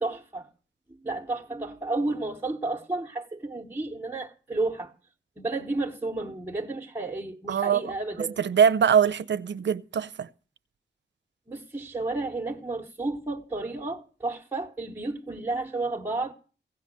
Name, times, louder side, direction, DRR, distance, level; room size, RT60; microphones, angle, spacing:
voice 1, 0.0-0.5 1.0-4.9 5.4-8.4 11.5-16.3, right 2 dB, 10° right, 1.0 m, -32 dB
voice 2, 7.5-7.8 8.4-10.3, right 8 dB, 70° right, 0.6 m, -22 dB
16.0 x 5.7 x 8.7 m
wide cardioid pair, 95°, 19 cm